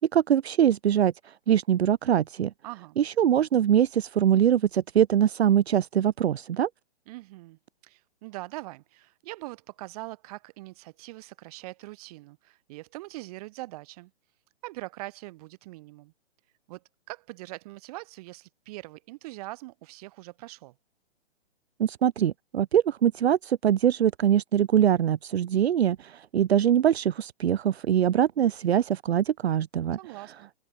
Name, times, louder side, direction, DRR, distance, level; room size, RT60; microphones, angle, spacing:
voice 1, 0.0-2.5 3.0-6.7 21.8-30.0, right 10 dB, 70° right, 0.8 m, -23 dB
voice 2, 2.6-3.0 7.1-14.1 14.6-16.1 16.7-20.8 30.0-30.5, right 20 dB, 35° right, 7.9 m, -42 dB
hypercardioid pair, 150°, 33 cm